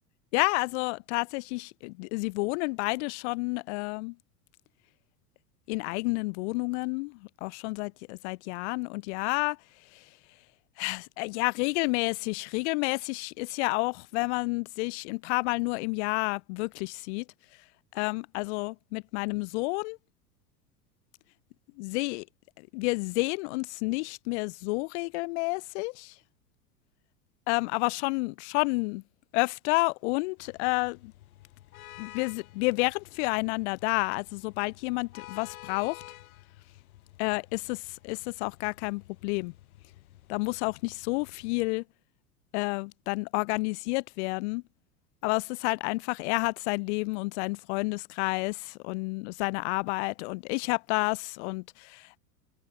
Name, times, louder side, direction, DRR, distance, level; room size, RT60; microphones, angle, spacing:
voice 1, 0.3-4.2 5.7-9.6 9.9-10.1 10.8-17.3 17.9-20.0 21.8-22.3 22.6-26.1 27.5-29.0 29.3-31.1 32.0-36.0 37.2-39.5 40.3-41.8 42.5-44.6 45.2-52.2, left 28 dB, 45° left, 0.7 m, -30 dB
sound 1, 30.4-41.7, left 15 dB, 65° left, 6.8 m, -51 dB
figure-of-eight pair, 85°, 46 cm